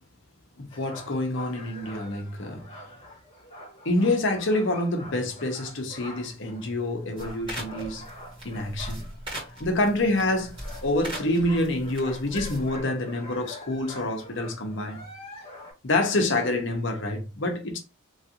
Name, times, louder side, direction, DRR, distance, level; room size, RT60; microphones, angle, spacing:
voice 1, 0.6-2.6 3.8-8.0 8.4-9.1 9.6-10.5 10.8-15.0 15.8-17.8, left 2 dB, 60° left, 0.8 m, -27 dB
sound 1, 0.7-9.9 10.2-15.7, left 1 dB, 30° left, 1.6 m, -45 dB
sound 2, 7.2-12.8, right 1 dB, 25° right, 1.4 m, -40 dB
3.1 x 2.6 x 2.8 m
head